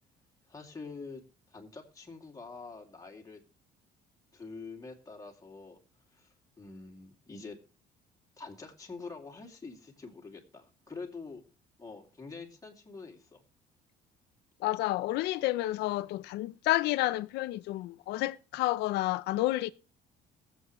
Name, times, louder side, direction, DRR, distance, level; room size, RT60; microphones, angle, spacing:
voice 1, 0.5-1.2 1.5-3.4 4.3-5.8 6.1-7.6 8.4-11.4 11.8-13.4, left 4 dB, 20° left, 2.5 m, -46 dB
voice 2, 14.6-19.7, left 17 dB, 85° left, 0.6 m, -30 dB
21.0 x 7.8 x 3.1 m
cardioid pair, 110°, 17 cm